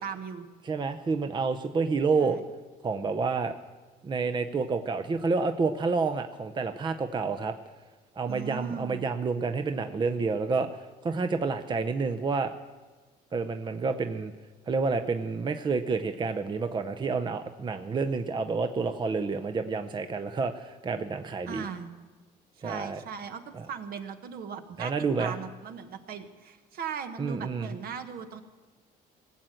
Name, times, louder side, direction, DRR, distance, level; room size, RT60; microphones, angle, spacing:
voice 1, 0.0-0.5 2.2-2.4 8.3-9.0 21.5-21.9 22.6-24.9 25.2-28.4, right 6 dB, 60° right, 7 dB, 1.3 m, -38 dB
voice 2, 0.6-2.4 2.8-3.6 4.0-7.5 8.2-10.7 11.0-12.5 13.3-14.3 14.7-21.7 22.6-23.0 23.5-23.7 24.8-25.4 27.2-27.7, right 4 dB, 25° right, 8 dB, 0.6 m, -29 dB
18.5 x 7.6 x 7.7 m, 1.3 s
cardioid pair, 110°, 17 cm